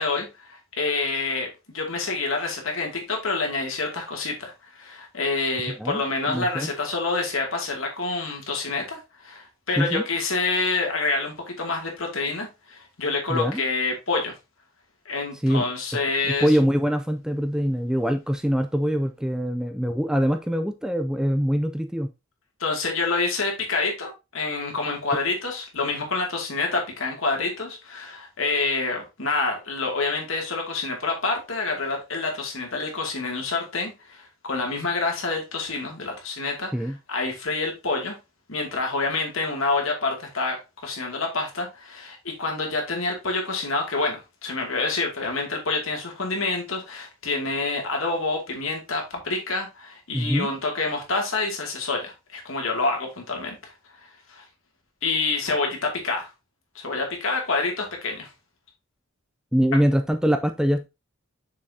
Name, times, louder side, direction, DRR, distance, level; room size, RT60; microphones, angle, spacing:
voice 1, 0.0-14.3 15.1-16.6 22.6-38.2 38.5-40.6 40.8-53.6 54.3-54.4 55.0-56.3 56.7-58.3, left 3 dB, 70° left, 2.4 m, -27 dB
voice 2, 5.8-6.7 9.8-10.0 13.3-13.6 15.4-15.6 16.3-22.1 36.7-37.0 50.1-50.5 59.5-60.9, equal, 5° right, 0.4 m, -23 dB
6.5 x 6.0 x 2.8 m
head